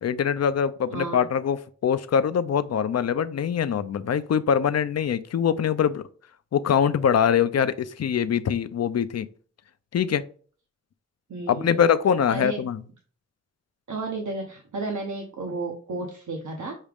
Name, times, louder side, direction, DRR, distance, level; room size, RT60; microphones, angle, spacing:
voice 1, 0.0-1.6 1.8-6.0 6.5-9.3 9.9-10.2 11.5-12.8, left 8 dB, 60° left, 13 dB, 0.5 m, -23 dB
voice 2, 0.9-1.2 11.3-11.9 12.3-12.6 13.9-16.8, right 2 dB, 80° right, 1 dB, 0.9 m, -32 dB
6.4 x 2.4 x 3.4 m, 0.43 s
wide cardioid pair, 60°, 29 cm